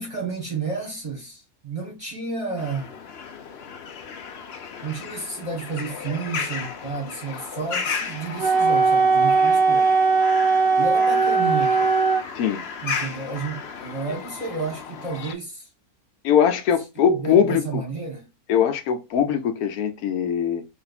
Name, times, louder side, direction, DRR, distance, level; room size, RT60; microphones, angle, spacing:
voice 1, 0.0-3.0 4.8-10.0 10.8-12.0 12.8-15.7 17.1-18.3, right 4 dB, 25° right, 0.9 m, -31 dB
sound 1, 2.6-15.3, left 6 dB, 60° left, 0.7 m, -35 dB
Wind instrument woodwind instrument, 8.4-12.3, right 4 dB, 45° right, 0.5 m, -19 dB
voice 2, 16.2-17.8 18.5-20.7, left 8 dB, 80° left, 1.1 m, -21 dB
3.4 x 2.4 x 3.9 m
omnidirectional pair, 1.6 m